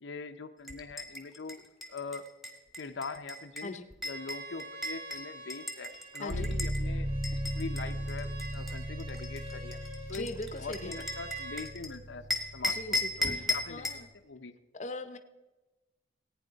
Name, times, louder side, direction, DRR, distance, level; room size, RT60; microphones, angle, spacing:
voice 1, 0.0-1.6 1.9-2.3 2.8-3.8 4.0-9.8 10.1-10.3 10.6-12.2 12.5-14.5, left 4 dB, 75° left, 7 dB, 0.6 m, -42 dB
sound 1, 0.7-6.8 7.2-11.9 12.3-14.0, left 1 dB, ahead, 1.2 m, -37 dB
Bowed string instrument, 4.0-11.6, equal, 30° right, 3.2 m, -48 dB
voice 2, 6.2-6.5 10.1-11.1 12.7-14.1 14.7-15.2, left 2 dB, 35° left, 9 dB, 0.7 m, -41 dB
sound 2, 6.3-14.0, right 1 dB, 80° right, 1.2 m, -37 dB
15.5 x 9.2 x 4.0 m, 1.1 s
head